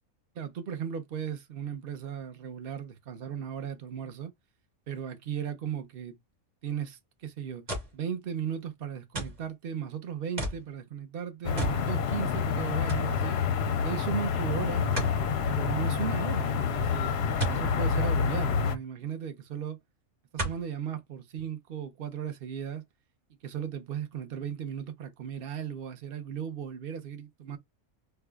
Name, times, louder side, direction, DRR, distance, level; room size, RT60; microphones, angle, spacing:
voice 1, 0.3-4.3 4.9-6.2 6.6-7.6 7.9-13.4 13.8-14.9 15.5-17.1 17.5-19.8 20.4-22.8 23.4-27.6, right 8 dB, 45° right, 0.9 m, -36 dB
sound 1, 7.7-8.0 9.1-9.5 10.4-10.7 11.6-11.8 12.2-12.3 12.9-13.1 15.0-15.2 17.4-17.6 19.1-19.2 20.4-20.7 21.4-21.5, right 2 dB, 30° right, 1.8 m, -33 dB
sound 2, 11.4-18.8, left 6 dB, 60° left, 0.7 m, -28 dB
4.6 x 2.3 x 2.3 m
omnidirectional pair, 1.5 m